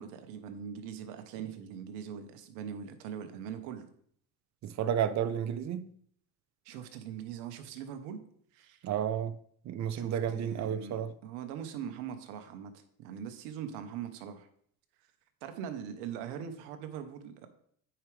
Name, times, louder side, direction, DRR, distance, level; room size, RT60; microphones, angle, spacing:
voice 1, 0.0-3.9 6.6-8.2 8.5-8.8 9.9-12.7 13.0-14.5 15.4-17.5, right 8 dB, 80° right, 1.1 m, -41 dB
voice 2, 4.6-5.9 8.8-9.4 9.6-11.1, right 9 dB, 40° right, 0.7 m, -31 dB
8.9 x 4.9 x 3.4 m
supercardioid pair, 100°, 42 cm